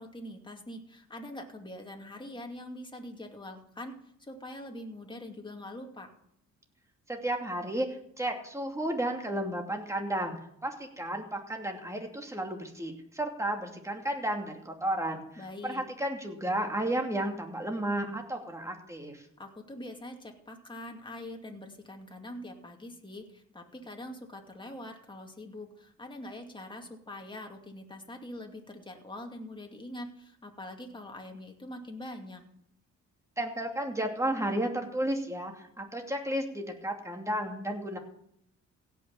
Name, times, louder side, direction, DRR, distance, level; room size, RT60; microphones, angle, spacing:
voice 1, 0.0-6.1 15.4-15.9 19.4-32.4, left 1 dB, 15° left, 2 dB, 2.5 m, -44 dB
voice 2, 7.1-7.9 8.2-10.4 10.6-15.2 15.6-19.2 33.4-38.0, right 1 dB, 10° right, 3 dB, 2.7 m, -33 dB
16.5 x 6.2 x 7.3 m, 0.73 s
cardioid pair, 90°, 30 cm